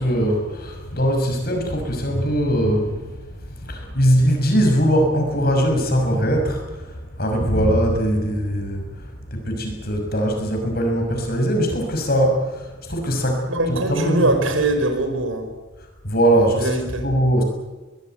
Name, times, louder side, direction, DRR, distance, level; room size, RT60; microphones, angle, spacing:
voice 1, 0.0-3.2 3.6-8.9 9.3-14.4 16.0-17.4, equal, 50° left, 3 dB, 6.3 m, -21 dB
voice 2, 13.5-15.5 16.5-17.1, right 2 dB, 80° right, 6 dB, 5.2 m, -22 dB
22.5 x 20.5 x 9.2 m, 1.2 s
head